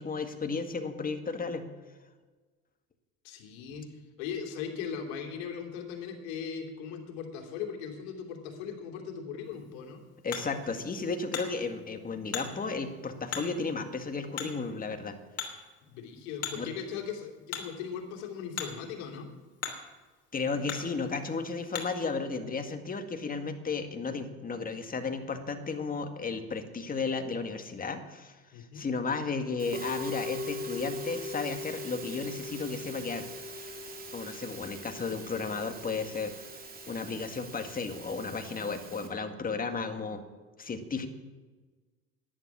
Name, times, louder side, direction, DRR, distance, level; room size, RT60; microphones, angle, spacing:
voice 1, 0.0-1.7 10.2-15.1 16.5-16.7 20.3-33.7 34.1-36.3 36.9-40.2 40.6-41.1, left 4 dB, 25° left, 6 dB, 2.0 m, -34 dB
voice 2, 3.2-3.9 4.2-10.0 15.8-19.3 28.5-28.9, left 7 dB, 75° left, 2 dB, 3.0 m, -39 dB
Hammer, 9.4-22.1, left 7 dB, 50° left, 3.0 m, -43 dB
Musical instrument, 29.6-39.1, left 1 dB, 25° right, 2.6 m, -41 dB
11.0 x 10.5 x 9.8 m, 1.3 s
supercardioid pair, 85°, 33 cm